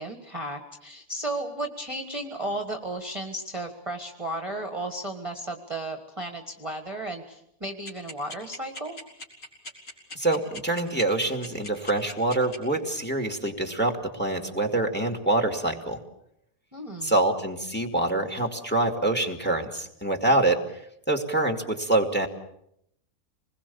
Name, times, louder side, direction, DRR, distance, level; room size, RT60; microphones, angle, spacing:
voice 1, 0.0-9.0 16.7-17.2, right 1 dB, 20° right, 4 dB, 1.7 m, -34 dB
sound 1, 7.9-12.6, left 1 dB, 75° left, 4.9 m, -39 dB
voice 2, 10.2-16.0 17.0-20.6 21.1-22.3, right 2 dB, 5° left, 4 dB, 2.2 m, -25 dB
26.5 x 21.0 x 7.0 m, 0.76 s
omnidirectional pair, 1.5 m